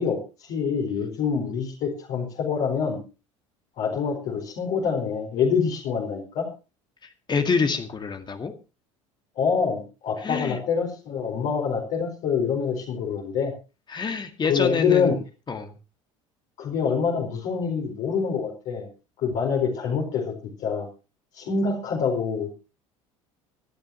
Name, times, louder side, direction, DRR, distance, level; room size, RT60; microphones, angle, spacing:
voice 1, 0.0-3.0 3.8-6.5 9.4-13.5 14.5-15.2 16.6-18.9 19.2-20.3 20.6-20.9 21.3-22.5, left 6 dB, 50° left, -1 dB, 4.6 m, -26 dB
voice 2, 7.3-8.5 10.2-10.6 13.9-15.2 15.5-15.7, left 5 dB, 25° left, 6 dB, 1.9 m, -26 dB
25.0 x 11.0 x 3.0 m, 0.32 s
figure-of-eight pair, 65°, 17 cm